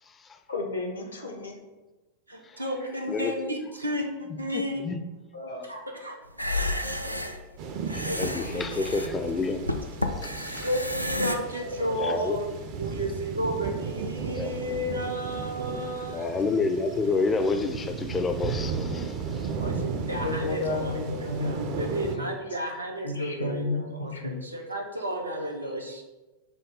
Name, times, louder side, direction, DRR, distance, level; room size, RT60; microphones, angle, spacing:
voice 1, 0.5-1.6 5.3-5.7 6.8-7.1 11.8-12.0 20.2-21.9 22.2-22.3 23.0-24.4, left 3 dB, 75° left, 0.8 m, -32 dB
voice 2, 2.3-4.8 5.6-6.5 8.0-9.2 10.4-16.3 19.6-26.0, equal, 85° right, 0.7 m, -33 dB
voice 3, 4.5-5.0 7.9-9.6 10.1-10.7 12.0-12.4 14.4-14.5 16.1-19.5, left 3 dB, 20° left, 0.4 m, -29 dB
sound 1, 6.3-11.4, left 1 dB, 90° left, 0.3 m, -31 dB
sound 2, 7.6-22.2, right 5 dB, 45° right, 0.5 m, -35 dB
6.1 x 2.3 x 3.6 m
figure-of-eight pair, 90°, 0 cm